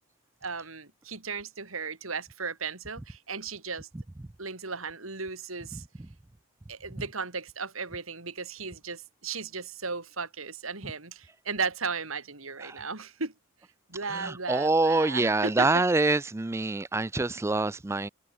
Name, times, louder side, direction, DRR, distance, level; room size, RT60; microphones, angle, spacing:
voice 1, 0.4-3.9 4.4-5.8 6.7-13.3 13.9-15.8, right 4 dB, 80° right, 3.4 m, -35 dB
voice 2, 14.1-18.1, right 2 dB, 15° right, 0.3 m, -26 dB
open air
head